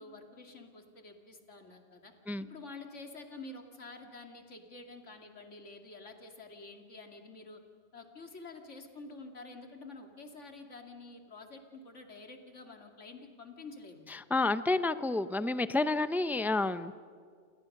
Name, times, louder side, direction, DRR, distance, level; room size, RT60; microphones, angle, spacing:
voice 1, 0.0-2.1 2.5-7.6 7.9-14.1, left 3 dB, 90° left, 4 dB, 2.8 m, -49 dB
voice 2, 14.1-16.9, left 2 dB, ahead, 12 dB, 0.4 m, -30 dB
29.0 x 28.0 x 6.6 m, 2.1 s
omnidirectional pair, 1.2 m